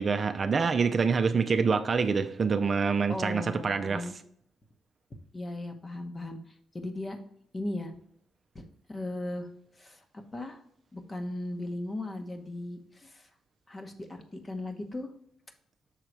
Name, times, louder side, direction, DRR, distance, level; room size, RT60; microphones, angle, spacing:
voice 1, 0.0-4.1, right 5 dB, 40° right, 7 dB, 0.5 m, -26 dB
voice 2, 3.1-4.1 5.3-6.4 6.7-7.2 7.5-7.9 8.5-9.5 9.8-10.6 10.9-13.3 13.7-15.1, left 1 dB, 25° left, 6 dB, 1.0 m, -37 dB
6.5 x 3.8 x 4.5 m, 0.68 s
cardioid pair, 90°, 0 cm